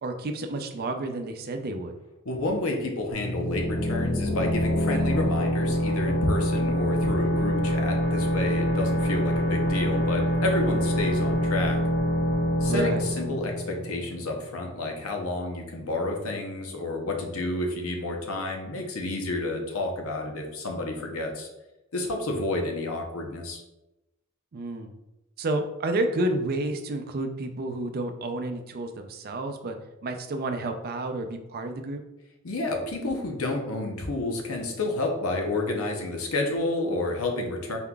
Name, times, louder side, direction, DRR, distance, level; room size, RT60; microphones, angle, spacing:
voice 1, 0.0-1.9 12.6-13.1 24.5-24.9 25.4-29.8 30.0-32.0, right 2 dB, 45° right, 6 dB, 0.4 m, -30 dB
voice 2, 2.2-11.8 12.6-21.5 21.9-23.6 32.4-37.8, left 2 dB, 85° left, 2 dB, 0.8 m, -30 dB
sound 1, 3.1-14.6, equal, 50° left, 0.5 m, -26 dB
4.3 x 3.7 x 2.3 m, 0.96 s
head